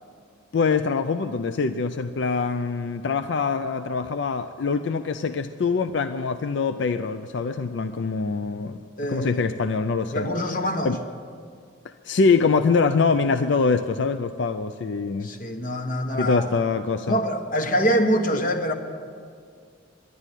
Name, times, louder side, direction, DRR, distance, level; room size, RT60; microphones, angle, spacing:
voice 1, 0.5-8.8 9.1-10.3 10.8-11.0 12.0-15.3 16.2-17.2 18.3-18.4, left 4 dB, 65° left, 9 dB, 0.4 m, -24 dB
voice 2, 9.0-9.4 10.1-10.9 15.2-16.4 17.1-18.7, equal, 45° left, 6 dB, 1.2 m, -24 dB
11.5 x 11.0 x 9.1 m, 2.2 s
head